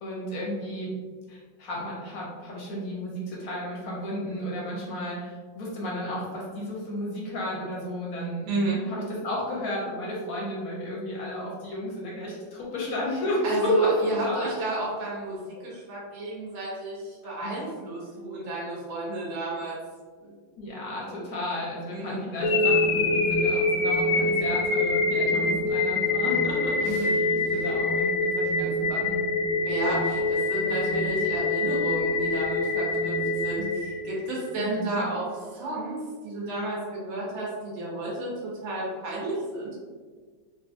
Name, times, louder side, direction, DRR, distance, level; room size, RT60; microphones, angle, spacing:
voice 1, 0.0-1.0 1.3-8.5 8.8-13.9 14.2-14.5 17.2-17.5 20.6-29.2 34.6-34.9, left 1 dB, 65° left, -4 dB, 0.9 m, -33 dB
voice 2, 8.5-8.8 13.4-19.8 20.2-20.3 21.9-22.2 26.8-27.2 27.4-27.7 29.6-39.8, right 2 dB, 85° right, -6 dB, 1.7 m, -31 dB
sound 1, 22.4-34.4, left 2 dB, 80° left, 1.2 m, -25 dB
4.0 x 2.5 x 2.4 m, 1.5 s
omnidirectional pair, 2.1 m